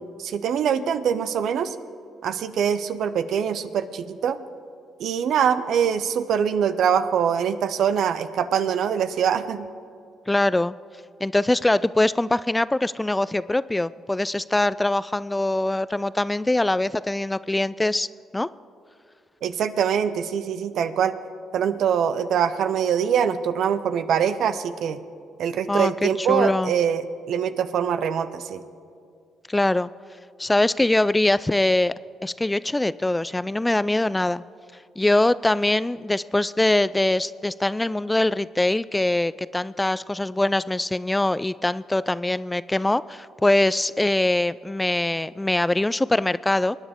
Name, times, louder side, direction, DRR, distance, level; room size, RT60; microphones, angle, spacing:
voice 1, 0.0-1.8 2.2-4.4 5.0-9.7 19.4-21.1 21.5-25.0 25.4-28.6, right 8 dB, 70° right, 12 dB, 0.6 m, -23 dB
voice 2, 10.3-10.7 11.2-18.1 18.3-18.5 25.7-26.7 29.5-29.9 30.4-31.9 32.2-34.4 35.0-46.8, left 2 dB, 15° left, 17 dB, 0.3 m, -23 dB
23.5 x 9.8 x 3.7 m, 2.3 s
supercardioid pair, 60°, 0 cm